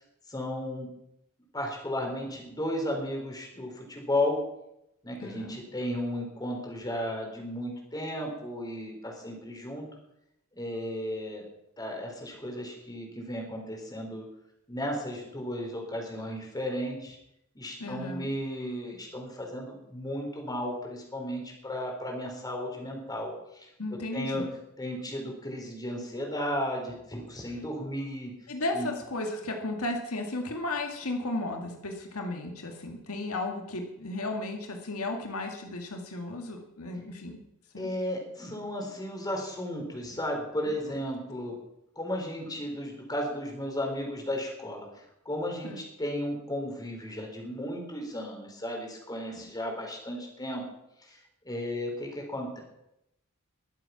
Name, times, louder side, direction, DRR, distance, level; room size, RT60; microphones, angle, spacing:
voice 1, 0.3-0.9 1.5-4.4 5.0-9.9 10.5-11.4 11.8-14.2 14.7-17.2 17.6-23.7 24.1-24.4 24.8-28.3 28.7-28.9 37.8-41.5 42.0-44.9 45.3-50.6 51.1-51.2 51.4-52.6, left 1 dB, 20° left, 1 dB, 3.9 m, -34 dB
voice 2, 5.2-5.6 17.8-18.3 23.8-24.5 28.5-37.4 37.7-37.9 45.6-45.8 49.3-49.5, left 2 dB, 85° left, 3 dB, 2.0 m, -34 dB
22.0 x 7.7 x 5.9 m, 0.83 s
head